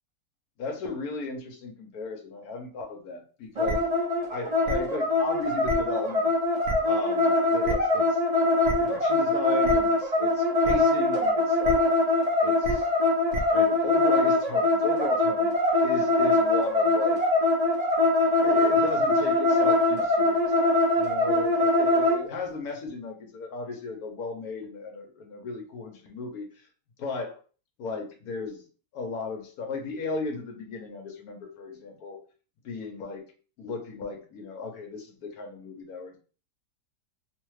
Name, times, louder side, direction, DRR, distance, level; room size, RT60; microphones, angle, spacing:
voice 1, 0.6-3.9 4.3-6.3 6.8-8.2 8.8-11.8 12.4-12.9 13.5-15.5 15.8-17.2 18.4-20.7 21.0-26.5 27.0-27.4 27.8-28.6 28.9-32.2 32.6-33.2 33.6-36.2, left 4 dB, 70° left, 3 dB, 1.0 m, -36 dB
sound 1, 3.6-22.2, left 2 dB, 45° right, 0.5 m, -23 dB
sound 2, 3.7-3.8 4.7-4.8 5.7-5.8 6.7-6.8 7.6-7.7 8.6-8.7 9.6-9.7 10.6-10.7 11.6-11.7 12.6-12.7 13.3-13.4, right 1 dB, 60° right, 0.8 m, -30 dB
3.1 x 2.1 x 3.1 m, 0.38 s
omnidirectional pair, 1.8 m